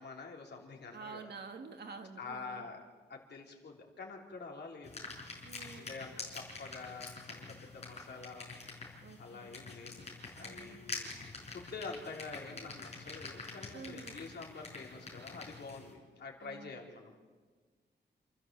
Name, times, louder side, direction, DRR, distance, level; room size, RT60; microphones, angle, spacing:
voice 1, 0.0-1.3 2.2-5.0 5.7-8.5 9.2-10.0 10.3-11.1 11.5-17.1, left 4 dB, 65° left, 1 dB, 3.5 m, -47 dB
voice 2, 0.9-2.7 5.4-5.9 9.0-9.5 10.3-10.9 13.7-14.2 16.4-16.8, right 4 dB, 60° right, 5 dB, 2.1 m, -49 dB
sound 1, 4.8-15.9, left 3 dB, 35° left, 5.2 m, -47 dB
28.0 x 13.5 x 7.6 m, 1.5 s
wide cardioid pair, 175°, 19 cm